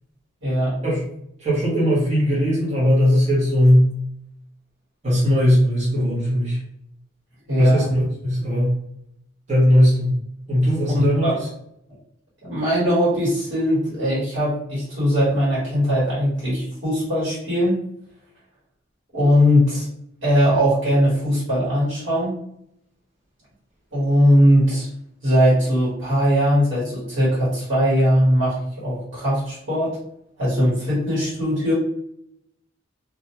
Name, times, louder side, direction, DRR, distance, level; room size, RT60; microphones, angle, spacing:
voice 1, 0.4-0.7 7.5-7.9 10.9-11.4 12.4-17.7 19.1-19.9 20.2-22.4 23.9-24.9 25.2-30.0 30.4-31.7, equal, 65° right, -8 dB, 1.2 m, -20 dB
voice 2, 1.4-3.9 5.0-6.6 7.6-8.8 9.5-10.1 10.5-11.5, equal, 35° right, -8 dB, 0.8 m, -18 dB
2.3 x 2.1 x 2.9 m, 0.74 s
head